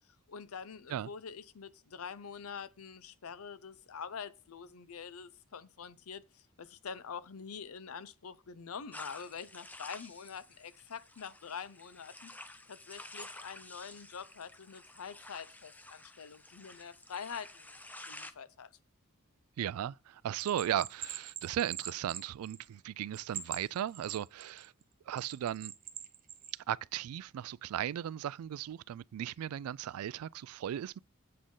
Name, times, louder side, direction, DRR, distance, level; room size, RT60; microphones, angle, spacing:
voice 1, 0.3-12.3 12.7-17.7 18.1-18.7, left 6 dB, 75° left, 0.6 m, -45 dB
sound 1, 8.9-18.3, left 2 dB, 5° left, 0.5 m, -51 dB
voice 2, 19.6-24.7 25.1-25.7 26.7-31.0, right 10 dB, 80° right, 0.3 m, -36 dB
Bell, 20.4-22.8 23.1-24.7 25.2-26.5, right 10 dB, 40° right, 0.9 m, -43 dB
7.7 x 6.2 x 3.8 m
head